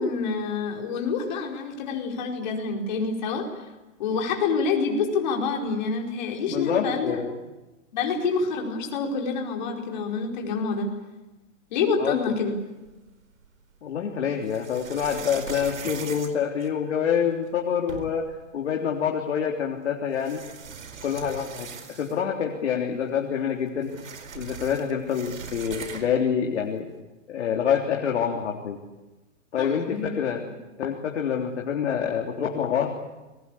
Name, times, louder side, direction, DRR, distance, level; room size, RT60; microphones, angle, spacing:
voice 1, 0.0-3.6 4.0-7.2 7.9-10.9 11.7-12.5 29.6-30.1, left 4 dB, 35° left, 1 dB, 4.9 m, -27 dB
voice 2, 6.5-7.4 12.0-12.2 13.8-18.2 18.5-20.4 21.0-23.9 24.3-26.9 27.3-28.8 29.5-30.4 30.8-33.0, left 7 dB, 60° left, 1 dB, 3.5 m, -26 dB
sound 1, 12.8-13.6 14.4-17.2 17.6-17.7 17.9-18.4 19.4-19.5 20.1-22.3 22.7-22.8 23.0-26.3, right 5 dB, 85° right, 4.6 m, -40 dB
29.0 x 21.5 x 8.5 m, 1.1 s
hypercardioid pair, 170°, 39 cm